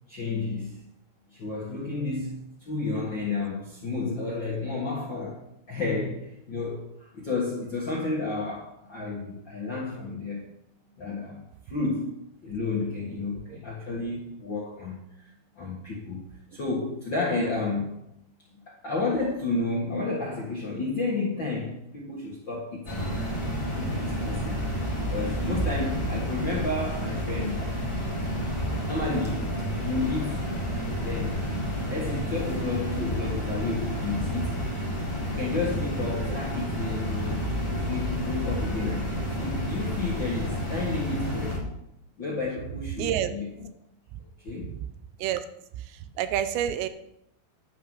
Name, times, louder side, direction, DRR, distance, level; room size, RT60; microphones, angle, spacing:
voice 1, 0.1-0.9 1.3-10.4 11.0-12.2 12.4-15.3 15.6-18.0 18.5-23.1 23.8-24.7 25.0-27.7 28.9-29.5 29.8-30.4 31.0-31.4 31.9-34.7 35.3-37.5 37.8-41.6 42.2-43.7 44.2-44.7, left 3 dB, 55° left, -5 dB, 1.2 m, -31 dB
sound 1, 22.9-41.6, equal, 10° left, 2.3 m, -30 dB
voice 2, 43.0-43.3 45.2-45.4 45.8-46.9, right 10 dB, 90° right, 11 dB, 2.8 m, -28 dB
11.5 x 5.9 x 6.4 m, 0.79 s
omnidirectional pair, 5.0 m